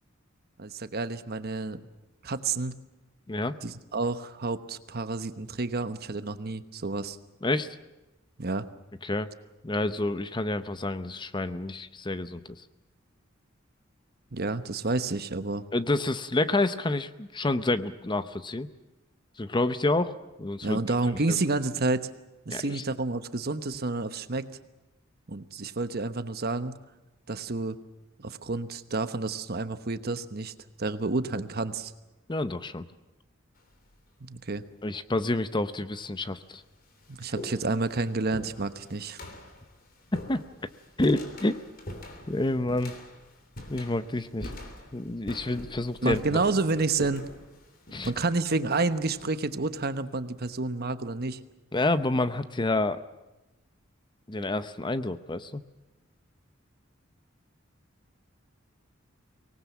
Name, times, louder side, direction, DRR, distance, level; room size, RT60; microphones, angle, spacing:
voice 1, 0.6-1.8 2.2-2.8 3.6-7.2 8.4-8.7 14.3-15.6 20.6-22.1 22.4-24.5 25.3-26.8 27.3-27.8 28.2-30.5 30.8-31.9 34.2-34.6 37.1-39.2 46.0-47.3 48.0-51.4, right 3 dB, 50° right, 11 dB, 1.1 m, -29 dB
voice 2, 9.6-12.4 15.7-18.7 19.4-20.1 20.4-20.8 22.5-22.8 32.3-32.8 34.8-36.6 40.1-40.4 41.0-41.6 42.3-42.9 43.7-44.5 44.9-46.2 47.9-48.1 51.7-53.0 54.3-55.6, left 2 dB, 25° left, 12 dB, 0.7 m, -28 dB
sound 1, 33.6-34.0 34.9-35.0 35.9-36.0 36.4-49.9, left 1 dB, 45° left, 3.1 m, -44 dB
24.0 x 19.0 x 7.4 m, 1.0 s
head